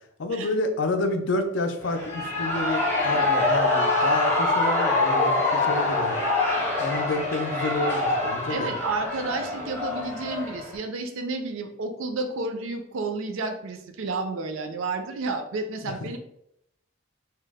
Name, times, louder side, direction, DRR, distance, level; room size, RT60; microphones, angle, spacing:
voice 1, 0.2-6.2 6.8-8.7 15.8-16.1, left 2 dB, 65° left, 6 dB, 0.4 m, -29 dB
Shout / Cheering, 1.8-10.8, left 2 dB, 10° left, 0.7 m, -25 dB
voice 2, 8.5-16.2, right 3 dB, 80° right, 6 dB, 0.4 m, -31 dB
2.8 x 2.0 x 3.3 m, 0.76 s
head